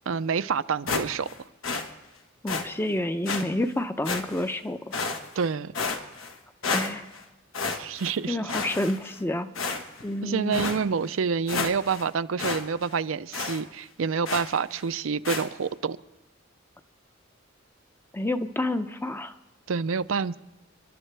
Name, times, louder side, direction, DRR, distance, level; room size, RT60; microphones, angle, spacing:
voice 1, 0.1-1.3 5.4-5.7 7.8-8.5 10.2-16.0 19.7-20.4, right 5 dB, 75° right, 13 dB, 0.5 m, -28 dB
sound 1, 0.9-1.4 1.6-1.9 2.5-2.6 3.2-3.4 4.0-4.5 4.9-5.4 5.7-6.3 6.6-7.2 7.5-8.1 8.5-9.2 9.5-10.1 10.5-10.8 11.2-11.3 11.5-12.0 12.4-12.6 12.9-13.0 13.3-13.6 14.2-14.6 15.2-15.5, left 4 dB, 85° left, 1.4 m, -30 dB
voice 2, 2.4-4.9 6.7-7.1 8.3-9.5 10.0-10.6 18.1-19.3, left 1 dB, 10° left, 9 dB, 0.5 m, -29 dB
30.0 x 11.5 x 3.4 m, 0.99 s
head